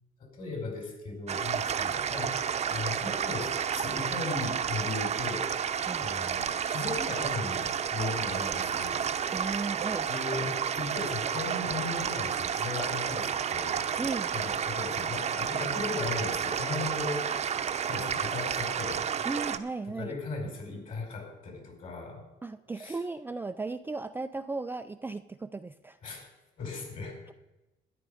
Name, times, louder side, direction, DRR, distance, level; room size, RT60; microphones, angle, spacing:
voice 1, 0.2-2.4 2.7-5.8 6.0-9.1 9.5-9.6 10.1-13.8 14.3-17.4 17.9-19.1 19.9-22.2 22.8-23.0 26.0-26.2 26.6-27.2, left 3 dB, 50° left, 3 dB, 4.7 m, -37 dB
sound 1, 1.3-19.6, right 8 dB, 40° right, 0.8 m, -31 dB
voice 2, 9.3-10.1 14.0-14.3 19.2-20.1 22.4-26.0, right 3 dB, 10° right, 8 dB, 0.4 m, -36 dB
13.0 x 10.0 x 5.0 m, 1.0 s
cardioid pair, 110°, 17 cm